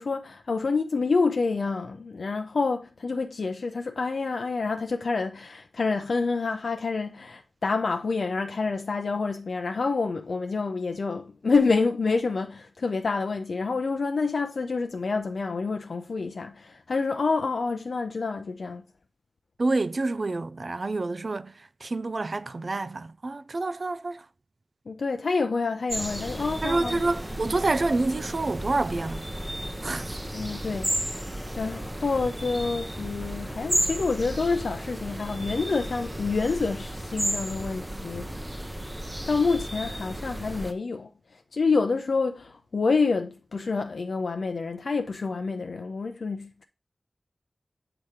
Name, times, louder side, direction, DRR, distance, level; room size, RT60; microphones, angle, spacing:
voice 1, 0.0-18.8 24.9-27.0 30.3-31.3 31.6-38.3 39.3-41.1 41.5-46.6, left 4 dB, 80° left, 0.5 m, -28 dB
voice 2, 19.6-24.3 26.6-29.3 29.8-30.2 38.4-38.5, right 2 dB, 55° right, 0.3 m, -28 dB
sound 1, 25.9-40.7, right 1 dB, 15° right, 0.7 m, -33 dB
7.8 x 2.9 x 4.8 m
wide cardioid pair, 60°, 0 cm